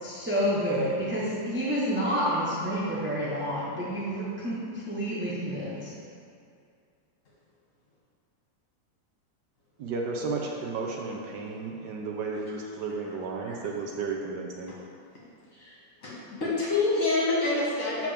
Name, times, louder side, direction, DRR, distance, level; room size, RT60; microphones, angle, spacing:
voice 1, 0.0-4.6 4.9-5.8, equal, 10° right, -9 dB, 0.7 m, -29 dB
voice 2, 9.8-14.7, right 4 dB, 70° right, 0 dB, 1.2 m, -33 dB
voice 3, 15.5-18.1, left 3 dB, 45° left, -7 dB, 1.9 m, -27 dB
7.4 x 5.9 x 3.4 m, 2.4 s
omnidirectional pair, 2.1 m